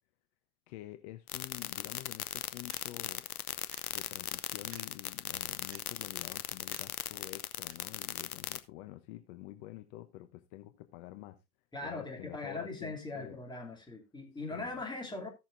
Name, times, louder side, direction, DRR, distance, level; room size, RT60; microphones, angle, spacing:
voice 1, 0.7-3.3 3.9-11.4 11.8-13.4 14.5-14.8, left 16 dB, 50° left, 1.0 m, -48 dB
sound 1, 1.3-8.6, left 11 dB, 90° left, 0.9 m, -37 dB
sound 2, 2.7-2.9 3.7-3.8 4.7-4.9 5.7-5.8 6.7-6.8 7.7-7.8, right 11 dB, 30° right, 0.9 m, -54 dB
voice 2, 11.7-15.3, left 3 dB, 10° left, 2.8 m, -40 dB
17.0 x 6.6 x 2.6 m
hypercardioid pair, 105°, 43 cm